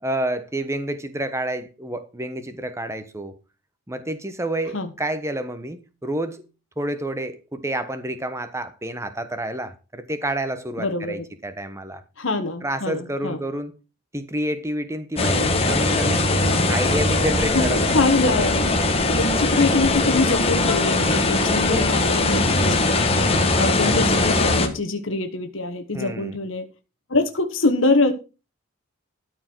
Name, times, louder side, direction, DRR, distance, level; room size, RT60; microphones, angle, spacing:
voice 1, 0.0-3.3 3.9-6.4 6.8-12.0 12.6-13.7 14.1-16.3 16.7-17.9 21.7-21.9 25.9-26.4, right 1 dB, 15° right, 1.1 m, -29 dB
voice 2, 10.8-11.2 12.2-13.4 16.4-16.8 17.5-18.6 19.2-23.0 23.5-26.7 27.1-28.1, left 3 dB, 70° left, 1.4 m, -24 dB
sound 1, 15.2-24.7, left 2 dB, 30° left, 1.6 m, -20 dB
13.0 x 4.7 x 6.2 m
head